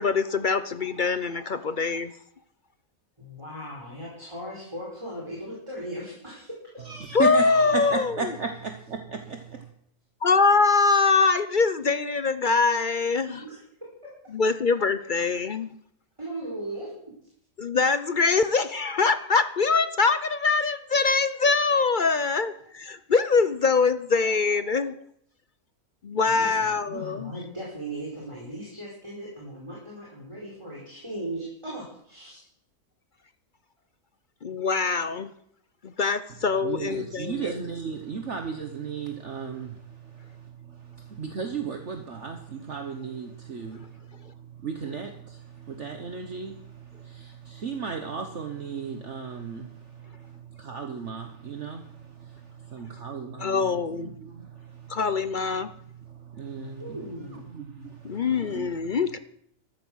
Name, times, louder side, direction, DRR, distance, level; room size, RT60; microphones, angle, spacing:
voice 1, 0.0-2.1 7.1-8.3 10.2-13.4 14.3-15.7 17.6-24.9 26.0-27.3 34.4-35.3 35.8-37.6 53.4-54.1 54.9-55.7 58.0-59.2, left 4 dB, 45° left, 12 dB, 0.6 m, -23 dB
voice 2, 3.2-6.5 13.4-13.6 14.0-14.1 16.2-16.9 26.2-32.4 56.8-57.4, right 1 dB, 20° right, -5 dB, 4.8 m, -37 dB
voice 3, 6.8-9.7 36.6-55.0 56.0-57.0 57.5-58.7, right 5 dB, 50° right, 5 dB, 1.5 m, -36 dB
14.0 x 13.5 x 6.4 m, 0.70 s
omnidirectional pair, 1.6 m